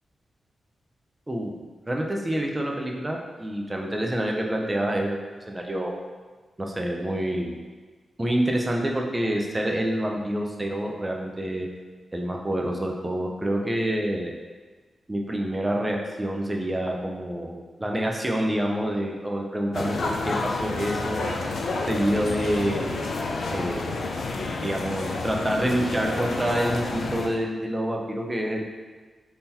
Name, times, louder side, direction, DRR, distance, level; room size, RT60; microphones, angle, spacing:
voice 1, 1.3-5.2 5.5-6.0 6.6-7.6 8.2-11.7 12.1-14.3 15.1-21.2 21.9-23.1 23.5-24.0 24.6-28.6, right 1 dB, 15° right, 0 dB, 0.4 m, -27 dB
sound 1, 19.7-27.3, left 3 dB, 65° left, 0.3 m, -30 dB
3.7 x 2.8 x 2.7 m, 1.4 s
wide cardioid pair, 175°, 0 cm